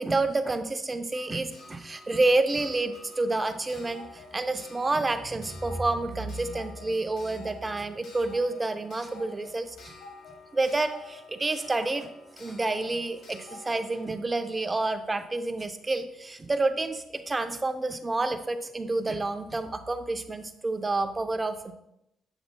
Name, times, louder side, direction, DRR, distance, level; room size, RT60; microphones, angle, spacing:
voice 1, 0.0-9.9 10.5-12.1 12.4-21.7, right 2 dB, 25° right, 8 dB, 0.6 m, -29 dB
Clock, 1.1-15.7 16.9-17.0 17.2-17.3, left 3 dB, 70° left, 2.0 m, -49 dB
7.1 x 7.0 x 2.2 m, 0.82 s
cardioid pair, 80°, 0 cm